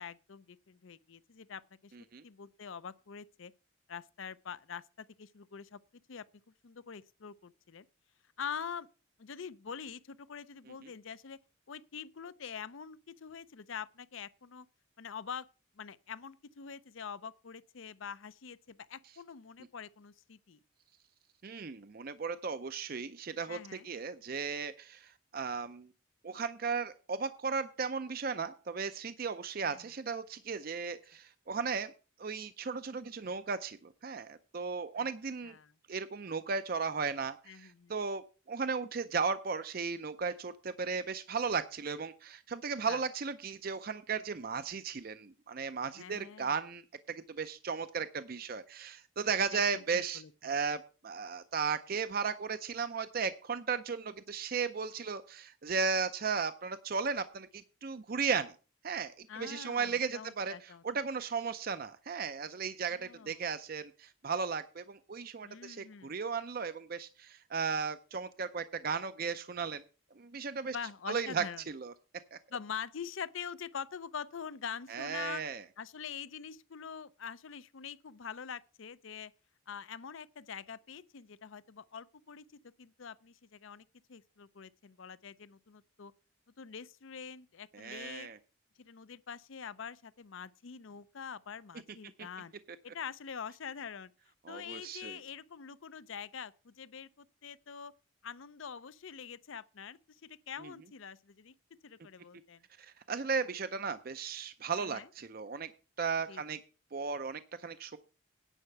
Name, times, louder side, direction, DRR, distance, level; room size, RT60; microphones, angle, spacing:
voice 1, 0.0-1.9 2.2-3.5 3.9-5.8 6.1-6.2 6.6-7.9 8.4-8.9 9.2-11.4 11.7-14.7 15.0-15.5 15.8-20.6 23.5-23.9 29.6-29.9 35.0-35.1 35.4-35.7 37.5-38.0 42.8-43.0 45.9-46.6 49.5-49.6 49.9-50.3 59.3-60.8 62.9-63.4 65.4-66.1 70.7-71.6 72.5-75.4 75.8-79.3 79.7-82.4 82.8-86.1 86.6-88.3 88.8-92.5 92.8-94.1 94.5-97.9 98.2-101.5 101.8-102.6 104.8-105.1 106.3-106.4, left 7 dB, 70° left, 0.6 m, -45 dB
voice 2, 21.4-25.9 26.2-31.9 32.2-35.5 35.9-58.5 58.8-69.8 70.2-70.8 71.1-71.9 72.3-72.4 74.9-75.6 87.7-88.4 94.5-95.2 100.6-100.7 102.8-105.7 106.0-106.6 106.9-108.0, right 5 dB, 45° right, 0.5 m, -36 dB
10.0 x 5.7 x 7.9 m
head